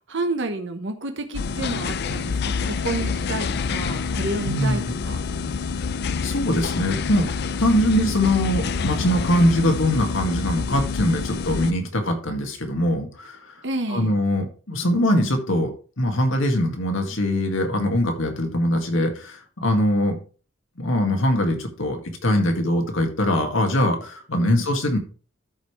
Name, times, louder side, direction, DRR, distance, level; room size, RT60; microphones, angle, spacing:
voice 1, 0.1-5.2 13.6-14.1 24.4-24.6, right 2 dB, 65° right, 6 dB, 1.1 m, -30 dB
sound 1, 1.3-11.7, left 5 dB, 55° left, 0.5 m, -27 dB
voice 2, 4.4-4.8 6.2-7.3 7.6-13.4 13.9-15.7 16.0-20.2 20.8-25.0, left 1 dB, 90° left, 4 dB, 2.0 m, -22 dB
13.0 x 5.4 x 3.2 m, 0.38 s
head